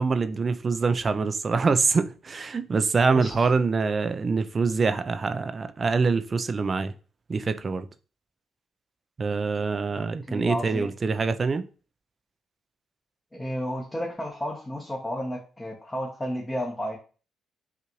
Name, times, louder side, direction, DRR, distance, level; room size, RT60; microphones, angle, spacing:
voice 1, 0.0-6.9 7.3-7.9 9.2-11.6, right 4 dB, 40° right, 0.4 m, -25 dB
voice 2, 3.1-3.5 10.0-10.9 13.3-17.0, equal, 20° left, 1.0 m, -32 dB
5.6 x 2.5 x 3.0 m
supercardioid pair, 65°, 0 cm